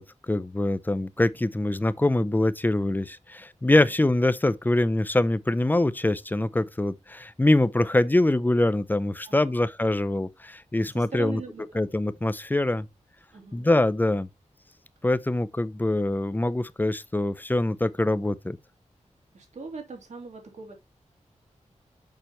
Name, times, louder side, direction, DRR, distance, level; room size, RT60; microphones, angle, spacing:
voice 1, 0.0-11.4 11.7-12.9 13.5-14.3 15.0-18.6, left 1 dB, 15° left, 0.5 m, -24 dB
voice 2, 9.2-9.6 10.7-11.9 13.3-13.7 19.3-20.7, right 4 dB, 70° right, 2.8 m, -40 dB
6.9 x 5.8 x 3.0 m
wide cardioid pair, 110°, 13 cm